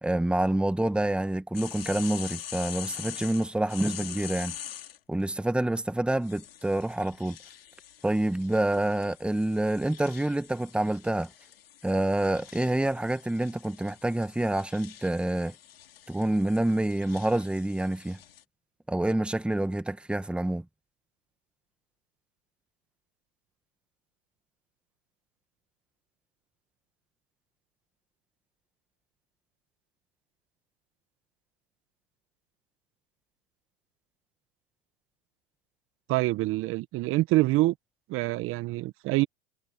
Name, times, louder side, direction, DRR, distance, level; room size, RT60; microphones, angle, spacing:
voice 1, 0.0-4.5 5.1-7.4 8.0-11.3 11.8-15.5 16.1-18.2 18.9-20.6, right 1 dB, 5° right, 1.6 m, -27 dB
sound 1, 1.5-5.0 6.2-18.4, left 11 dB, 85° left, 2.8 m, -44 dB
voice 2, 36.1-37.7 38.1-39.3, right 18 dB, 45° right, 1.5 m, -25 dB
hypercardioid pair, 95°, 29 cm